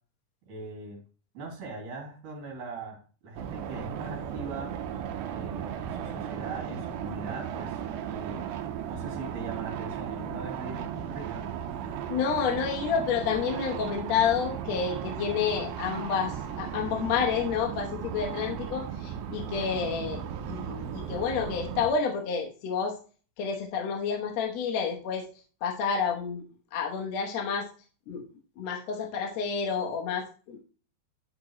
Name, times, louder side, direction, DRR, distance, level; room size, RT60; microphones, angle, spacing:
voice 1, 0.5-1.0 1.3-4.7 5.3-7.8 8.1-8.5 8.8-11.5, right 3 dB, 60° right, 0 dB, 3.6 m, -40 dB
sound 1, 3.4-21.9, right 9 dB, 80° right, 2.5 m, -36 dB
voice 2, 12.1-20.2 20.5-23.0 23.4-25.3 25.6-26.4 26.7-27.7 28.1-28.2 28.6-30.6, left 6 dB, 70° left, 1 dB, 1.6 m, -29 dB
10.5 x 4.4 x 3.0 m, 0.38 s
omnidirectional pair, 4.4 m